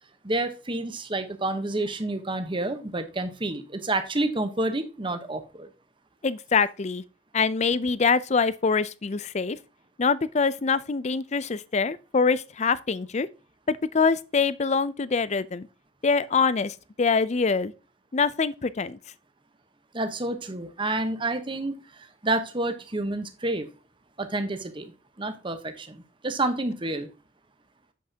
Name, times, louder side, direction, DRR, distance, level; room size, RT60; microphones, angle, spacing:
voice 1, 0.2-5.7 19.9-23.7 24.2-24.9 25.2-27.1, right 2 dB, 25° right, 1.0 m, -29 dB
voice 2, 6.2-7.0 7.3-9.6 10.0-13.3 13.7-15.7 16.0-17.7 18.1-19.0, left 5 dB, 35° left, 0.5 m, -24 dB
8.4 x 8.0 x 2.8 m
head